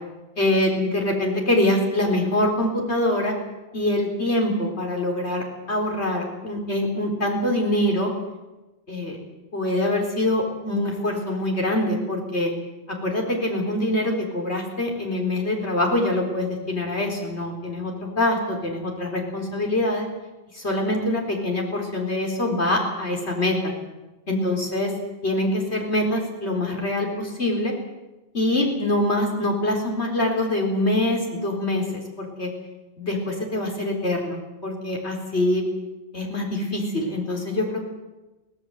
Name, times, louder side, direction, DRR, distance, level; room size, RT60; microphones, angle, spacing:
voice 1, 0.4-3.3 3.7-8.1 8.9-9.2 9.5-12.5 13.0-20.1 20.5-23.7 24.3-24.9 25.2-27.7 28.3-32.5 33.0-35.6 36.1-37.9, left 1 dB, 80° left, 0 dB, 4.5 m, -24 dB
24.0 x 18.0 x 8.1 m, 1.1 s
omnidirectional pair, 1.1 m